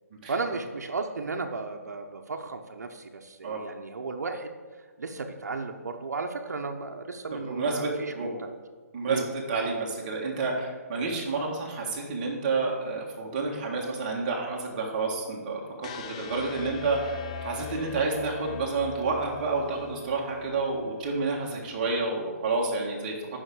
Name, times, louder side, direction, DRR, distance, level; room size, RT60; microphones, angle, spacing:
voice 1, 0.3-4.5 5.0-8.5 9.1-9.2, right 4 dB, 85° right, 4 dB, 0.8 m, -34 dB
voice 2, 7.3-8.3 8.9-23.1, right 3 dB, 30° right, -1 dB, 1.6 m, -29 dB
sound 1, 15.8-21.9, left 6 dB, 25° left, 0.3 m, -42 dB
6.3 x 5.7 x 6.2 m, 1.4 s
hypercardioid pair, 165°, 9 cm